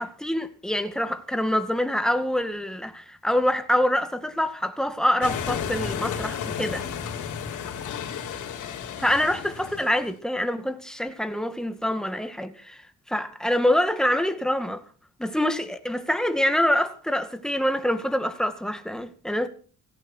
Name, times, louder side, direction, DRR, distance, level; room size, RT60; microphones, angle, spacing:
voice 1, 0.0-6.8 9.0-12.8 13.1-14.8 15.2-19.5, left 1 dB, ahead, 2.1 m, -25 dB
sound 1, 5.2-10.1, left 7 dB, 80° left, 3.5 m, -32 dB
16.5 x 16.5 x 4.6 m
cardioid pair, 90°, 30 cm